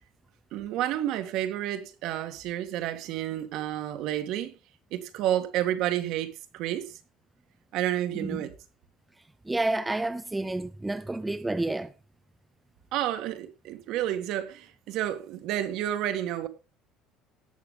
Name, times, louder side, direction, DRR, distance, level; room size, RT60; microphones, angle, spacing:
voice 1, 0.5-4.5 4.9-7.0 7.7-8.5 12.9-16.5, right 12 dB, 65° right, 1.7 m, -30 dB
voice 2, 9.5-11.9, right 2 dB, 10° right, 0.5 m, -30 dB
18.5 x 6.9 x 3.8 m
cardioid pair, 140°, 0 cm